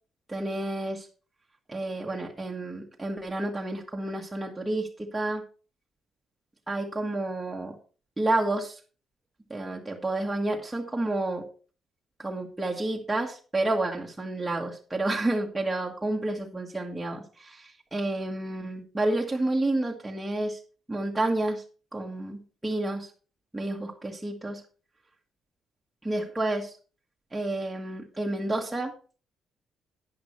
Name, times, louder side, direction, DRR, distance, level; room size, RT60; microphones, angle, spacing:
voice 1, 0.3-1.1 1.7-5.4 6.7-7.7 8.2-8.8 9.5-11.5 12.2-20.6 20.9-21.6 21.9-23.1 23.5-24.6 26.0-26.8 27.3-28.9, right 2 dB, 10° right, -2 dB, 1.6 m, -30 dB
11.0 x 9.7 x 3.3 m, 0.38 s
cardioid pair, 90°, 0 cm